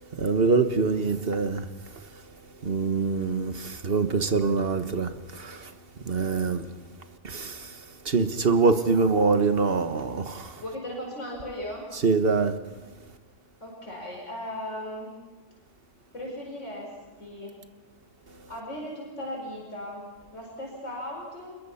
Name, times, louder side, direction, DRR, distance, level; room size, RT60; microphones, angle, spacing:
voice 1, 0.2-1.6 2.6-5.6 6.1-6.6 7.2-7.7 8.0-10.5 12.0-12.6, right 4 dB, 55° right, 1.6 m, -24 dB
voice 2, 10.6-11.9 13.6-15.2 16.1-17.6 18.5-21.6, left 1 dB, 90° left, 5.6 m, -37 dB
26.0 x 22.0 x 5.7 m
omnidirectional pair, 1.2 m